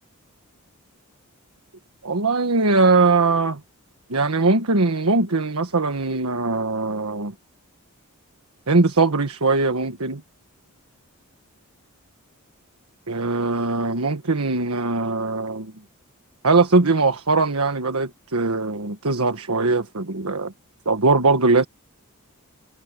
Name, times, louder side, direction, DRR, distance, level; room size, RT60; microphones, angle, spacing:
voice 1, 2.0-3.6 4.1-7.3 8.7-10.2 13.1-15.7 16.4-20.5 20.8-21.6, right 3 dB, 75° right, 1.4 m, -20 dB
head